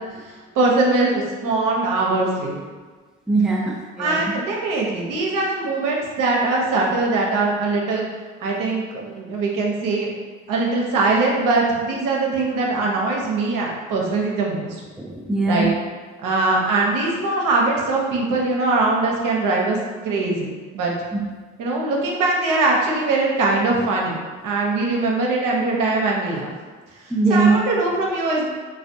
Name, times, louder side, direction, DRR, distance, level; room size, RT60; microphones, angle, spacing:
voice 1, 0.6-2.5 4.0-8.1 8.4-10.1 10.5-14.7 15.5-15.7 16.2-19.8 20.0-20.9 21.6-24.1 24.4-26.5 27.3-28.5, right 3 dB, 60° right, -2 dB, 0.8 m, -21 dB
voice 2, 3.3-4.2 15.0-15.7 21.1-21.2 27.1-27.6, right 3 dB, ahead, -2 dB, 0.5 m, -20 dB
3.3 x 2.4 x 2.6 m, 1.4 s
hypercardioid pair, 45°, 37 cm